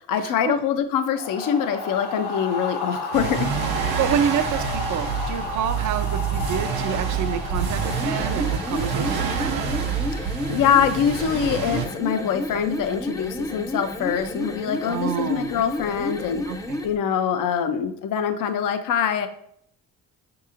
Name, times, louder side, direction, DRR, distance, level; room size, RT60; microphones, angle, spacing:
voice 1, 0.0-3.5 10.2-16.4 16.8-19.3, left 8 dB, 60° left, 8 dB, 0.5 m, -24 dB
sound 1, 1.1-10.2, left 4 dB, 90° left, 1.0 m, -33 dB
sound 2, 3.1-11.9, right 6 dB, 75° right, 0.8 m, -27 dB
voice 2, 3.8-9.6 14.9-15.5 16.5-16.8, right 9 dB, 50° right, 11 dB, 0.5 m, -28 dB
sound 3, 7.7-17.0, left 1 dB, 10° left, 0.5 m, -31 dB
5.4 x 2.9 x 2.5 m, 0.68 s
supercardioid pair, 70°, 37 cm